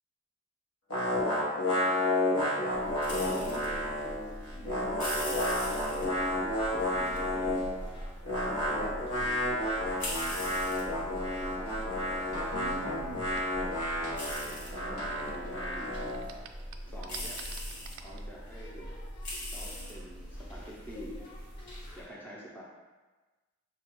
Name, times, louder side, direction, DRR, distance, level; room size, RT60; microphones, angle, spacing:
sound 1, 0.9-4.2 4.4-7.8 8.2-16.3, left 1 dB, 80° left, 1.3 m, -31 dB
voice 1, 1.1-2.2 3.2-6.4 6.7-8.0 8.3-9.7 10.4-13.2 14.0-16.2 16.9-17.5 18.0-19.0 19.4-21.3 21.9-22.6, equal, 10° left, -5 dB, 0.6 m, -47 dB
sound 2, 2.7-22.0, equal, 55° left, 1.3 m, -41 dB
sound 3, 11.4-15.8 16.0-18.2, right 5 dB, 60° right, 0.3 m, -46 dB
6.7 x 2.3 x 3.0 m, 1.2 s
head